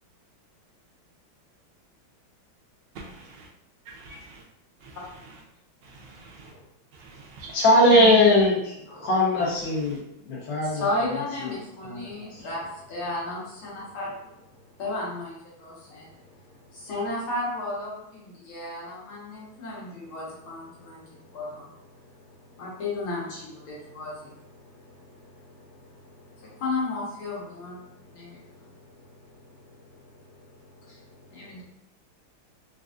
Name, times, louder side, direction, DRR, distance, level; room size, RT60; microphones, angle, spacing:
voice 1, 2.9-3.3 4.8-5.0 5.8-6.5 6.9-7.6 7.9-8.2, right 4 dB, 70° right, -2 dB, 1.2 m, -34 dB
voice 2, 7.5-10.0 10.3-10.8 11.8-12.4, left 1 dB, 70° left, -4 dB, 1.8 m, -20 dB
voice 3, 10.6-31.6, left 2 dB, 90° left, -6 dB, 2.1 m, -35 dB
4.7 x 2.5 x 2.4 m, 0.83 s
omnidirectional pair, 2.2 m